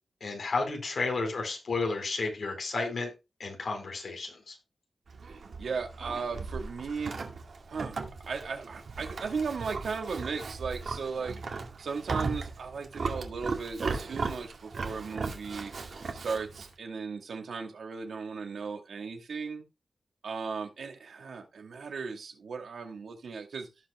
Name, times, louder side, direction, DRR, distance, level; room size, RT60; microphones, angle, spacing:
voice 1, 0.2-3.1 3.4-4.6, left 3 dB, 65° left, 4.3 m, -32 dB
Livestock farm animals working animals, 5.1-16.7, right 4 dB, 70° right, 2.0 m, -37 dB
voice 2, 5.3-7.1 7.7-8.0 8.3-11.4 11.8-15.7 16.2-19.6 20.2-23.7, right 5 dB, 90° right, 2.5 m, -36 dB
17.0 x 5.8 x 2.2 m
wide cardioid pair, 115°, 0 cm